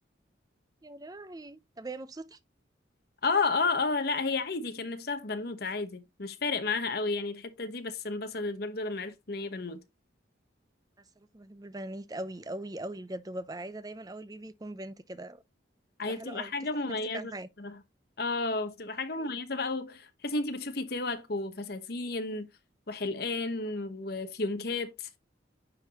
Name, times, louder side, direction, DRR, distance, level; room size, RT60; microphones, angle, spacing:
voice 1, 0.8-2.4 11.2-15.4 16.0-17.5 19.2-19.4, right 1 dB, 20° right, 0.5 m, -41 dB
voice 2, 3.2-9.8 16.0-17.3 17.6-17.8 18.2-22.5 22.9-25.2, left 3 dB, 55° left, 1.0 m, -32 dB
9.8 x 3.9 x 2.9 m
head